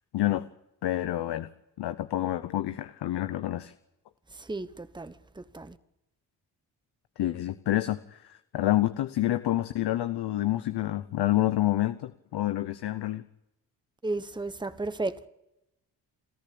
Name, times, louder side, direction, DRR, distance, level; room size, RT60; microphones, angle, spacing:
voice 1, 0.1-0.5 0.8-1.5 1.8-3.7 7.2-13.3, left 14 dB, 80° left, 0.9 m, -28 dB
voice 2, 4.3-5.8 14.0-15.3, right 2 dB, 10° right, 1.1 m, -34 dB
25.5 x 14.0 x 8.6 m
cardioid pair, 70°, 40 cm